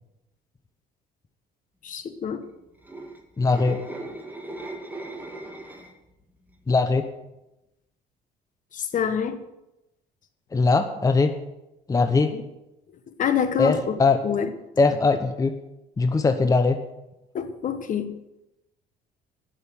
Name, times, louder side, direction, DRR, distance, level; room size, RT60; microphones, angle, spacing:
voice 1, 1.8-2.4 8.7-9.4 12.3-12.4 13.1-14.5 17.3-18.2, left 8 dB, 50° left, 10 dB, 1.4 m, -27 dB
sound 1, 2.7-6.1 6.5-6.8, right 2 dB, 10° right, 1.9 m, -38 dB
voice 2, 3.4-3.8 6.7-7.1 10.5-11.3 11.9-12.4 13.6-14.2 14.8-15.6 16.0-16.8, left 3 dB, 20° left, 7 dB, 0.9 m, -21 dB
11.0 x 6.8 x 9.5 m, 0.92 s
cardioid pair, 110°, 17 cm